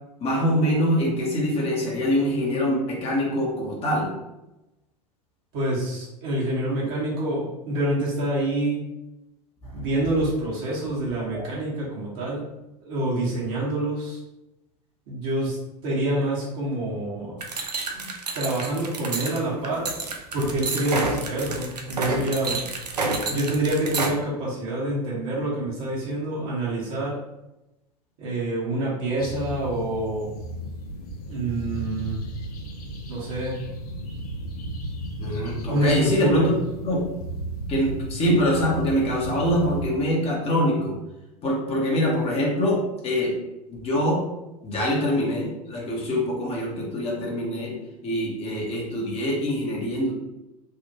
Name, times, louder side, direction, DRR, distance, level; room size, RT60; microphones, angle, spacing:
voice 1, 0.2-4.1 9.6-9.7 11.3-11.4 17.9-18.0 35.2-36.5 36.8-37.0 37.7-40.9 41.4-43.3 43.7-44.2 44.6-47.7 48.0-50.1, equal, 30° left, -3 dB, 1.0 m, -24 dB
voice 2, 5.5-8.8 9.7-12.4 12.8-14.2 15.1-15.6 15.8-17.4 18.3-19.9 20.3-22.7 23.3-27.2 28.2-30.3 31.3-32.2 33.1-33.6 35.6-36.5, right 1 dB, 50° right, -5 dB, 1.4 m, -26 dB
sound 1, 17.4-24.1, right 3 dB, 80° right, 0.5 m, -29 dB
sound 2, 29.2-39.8, right 1 dB, 70° left, 0.7 m, -34 dB
3.4 x 2.4 x 2.9 m, 0.95 s
figure-of-eight pair, 85°, 20 cm